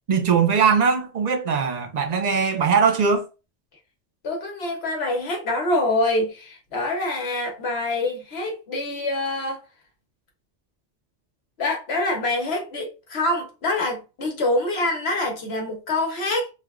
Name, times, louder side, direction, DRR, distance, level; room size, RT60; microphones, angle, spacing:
voice 1, 0.1-3.3, right 6 dB, 60° right, 0.4 m, -20 dB
voice 2, 4.2-9.6 11.6-16.5, left 2 dB, 65° left, 1.1 m, -25 dB
3.2 x 2.2 x 2.3 m
omnidirectional pair, 1.2 m